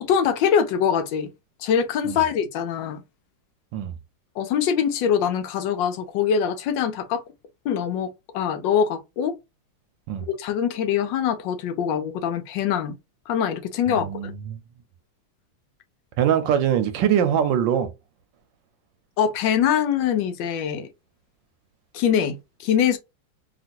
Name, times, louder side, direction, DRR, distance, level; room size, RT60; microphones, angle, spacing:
voice 1, 0.0-1.3 1.6-3.0 4.4-7.2 7.6-9.3 10.2-13.0 13.3-14.3 19.2-20.9 21.9-23.0, left 8 dB, 75° left, 1.2 m, -23 dB
voice 2, 13.9-14.6 16.2-17.9, right 9 dB, 75° right, 1.2 m, -22 dB
3.0 x 2.8 x 2.5 m
omnidirectional pair, 2.1 m